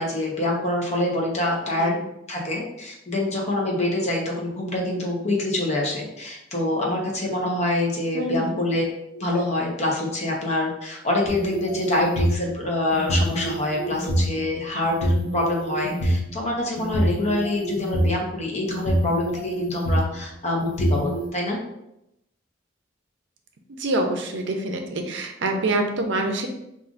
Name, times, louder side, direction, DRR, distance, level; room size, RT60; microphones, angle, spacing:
voice 1, 0.0-1.9 2.3-8.9 9.1-21.6, left 1 dB, 35° left, -2 dB, 0.9 m, -25 dB
voice 2, 8.1-8.6 23.8-26.5, right 2 dB, 70° right, 4 dB, 0.5 m, -26 dB
sound 1, 11.3-12.4 12.9-14.2 14.8-16.1 16.8-18.2 18.7-20.1 20.6-21.2, right 1 dB, 80° left, 0.8 m, -25 dB
5.4 x 2.5 x 2.5 m, 0.85 s
head